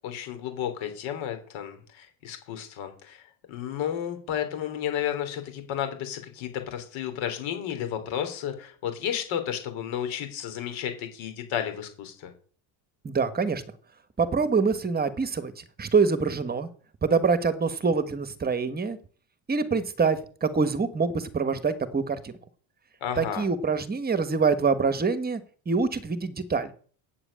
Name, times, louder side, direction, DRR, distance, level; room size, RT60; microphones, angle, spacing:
voice 1, 0.0-3.2 3.5-12.3 23.0-23.5, left 9 dB, 70° left, 7 dB, 3.6 m, -32 dB
voice 2, 13.0-13.6 14.2-16.7 17.0-19.0 19.5-22.3 23.2-25.4 25.7-26.7, right 5 dB, 20° right, 12 dB, 1.2 m, -25 dB
8.4 x 7.9 x 8.8 m, 0.44 s
cardioid pair, 140°, 48 cm